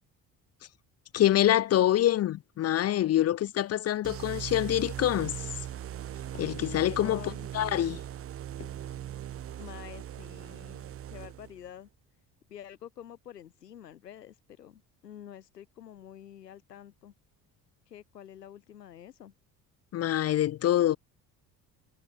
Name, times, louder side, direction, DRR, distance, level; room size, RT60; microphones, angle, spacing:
voice 1, 1.1-5.4 6.3-7.2 7.5-8.0 19.9-21.0, left 12 dB, 35° left, 0.4 m, -25 dB
sound 1, 4.0-11.7, right 11 dB, 30° right, 0.5 m, -39 dB
voice 2, 7.0-7.5 9.6-11.9 12.5-17.1 17.9-19.3, left 10 dB, 90° left, 1.6 m, -48 dB
hypercardioid pair, 50°, 47 cm